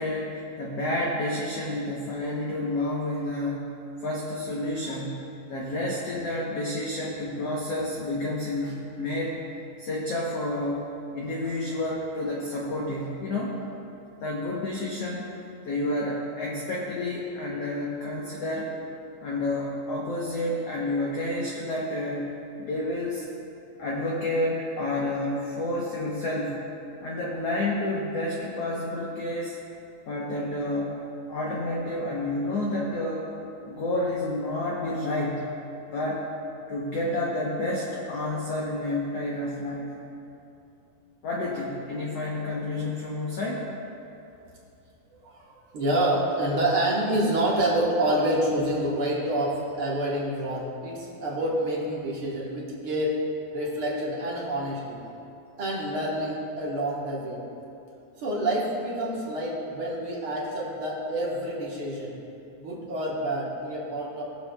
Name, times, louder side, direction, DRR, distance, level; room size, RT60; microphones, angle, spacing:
voice 1, 0.0-3.7 4.0-9.4 9.8-10.8 11.1-13.6 14.2-15.3 15.6-18.7 19.2-22.3 22.6-23.2 23.8-26.6 27.0-29.5 30.1-31.0 31.3-33.3 33.7-35.5 35.9-36.2 36.7-39.9 41.2-43.6, left 1 dB, 90° left, -4 dB, 1.3 m, -30 dB
voice 2, 45.2-53.2 53.5-55.0 55.6-57.4 58.2-62.1 62.6-64.2, right 1 dB, 55° right, -5 dB, 1.5 m, -27 dB
21.0 x 7.0 x 2.3 m, 2.8 s
omnidirectional pair, 4.2 m